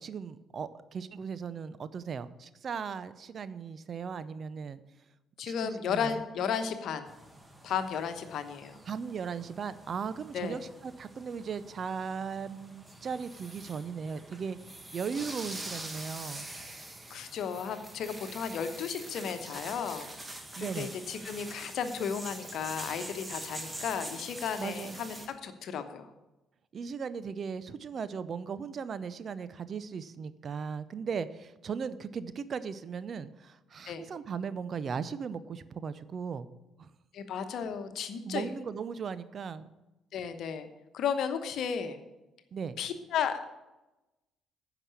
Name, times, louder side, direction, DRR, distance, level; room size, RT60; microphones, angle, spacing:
voice 1, 0.0-4.8 5.4-6.2 8.9-14.6 14.9-16.4 20.6-20.9 24.6-25.0 26.7-36.5 36.8-36.9 38.3-39.7 42.5-42.8, right 6 dB, 50° right, 15 dB, 0.6 m, -37 dB
voice 2, 5.4-7.1 7.6-8.8 10.3-10.6 17.1-20.1 20.6-26.1 33.9-34.0 37.1-38.5 40.1-40.7 40.9-42.0 42.8-43.6, left 7 dB, 65° left, 9 dB, 1.0 m, -34 dB
sound 1, 7.1-25.3, right 1 dB, 20° right, 1.8 m, -45 dB
10.0 x 6.0 x 8.3 m, 1.0 s
hypercardioid pair, 50°, 0 cm